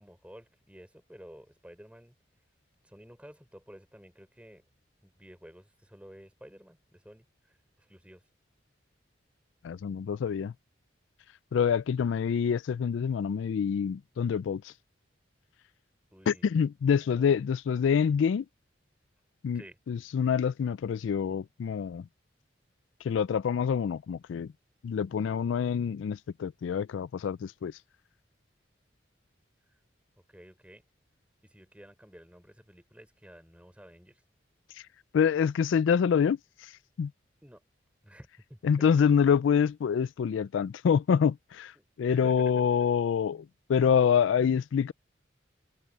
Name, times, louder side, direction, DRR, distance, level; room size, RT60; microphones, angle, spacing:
voice 1, 0.0-2.1 2.8-4.6 5.0-8.2 16.1-16.5 17.1-17.4 19.5-19.8 30.3-30.8 31.4-34.2 37.4-37.6 38.0-38.9 41.8-42.9, equal, 5° right, 4.9 m, -52 dB
voice 2, 9.6-10.5 11.5-14.7 16.3-18.4 19.4-19.6 19.9-22.1 23.0-24.5 24.8-27.7 35.1-36.7 37.0-37.1 38.6-41.7 42.0-44.9, left 7 dB, 85° left, 0.3 m, -26 dB
head